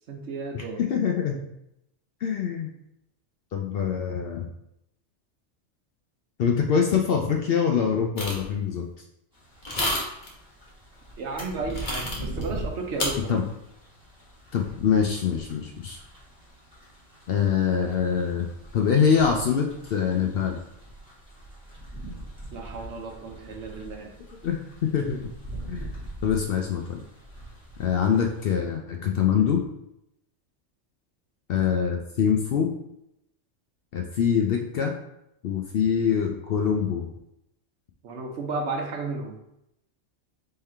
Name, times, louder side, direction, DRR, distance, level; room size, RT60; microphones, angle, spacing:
voice 1, 0.1-0.8 11.2-13.4 22.5-24.1 38.0-39.4, right 3 dB, 65° right, 2 dB, 1.0 m, -33 dB
voice 2, 0.9-1.4 2.2-2.7 3.5-4.5 6.4-8.9 13.3-13.4 14.5-16.0 17.3-20.6 24.4-25.3 25.7-25.9 26.2-27.0 27.8-29.6 31.5-32.7 33.9-35.0 35.4-37.1, left 7 dB, 65° left, 3 dB, 0.6 m, -24 dB
sound 1, 8.2-8.5 9.6-10.3 11.7-12.4 13.0-13.1, left 1 dB, 40° left, 1.1 m, -29 dB
sound 2, 9.3-28.6, right 1 dB, 5° right, 1.7 m, -42 dB
3.8 x 3.3 x 4.3 m, 0.82 s
omnidirectional pair, 1.3 m